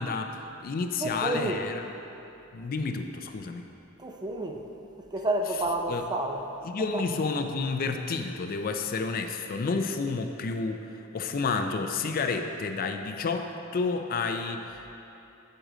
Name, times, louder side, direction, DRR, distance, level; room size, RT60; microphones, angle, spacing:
voice 1, 0.0-1.8 2.5-3.6 5.9-6.0 6.6-14.9, left 4 dB, 40° left, 6 dB, 0.4 m, -30 dB
voice 2, 1.0-1.6 4.0-4.7 5.0-6.5 6.9-7.1, right 1 dB, 20° right, 3 dB, 0.4 m, -30 dB
8.0 x 7.6 x 3.8 m, 2.9 s
head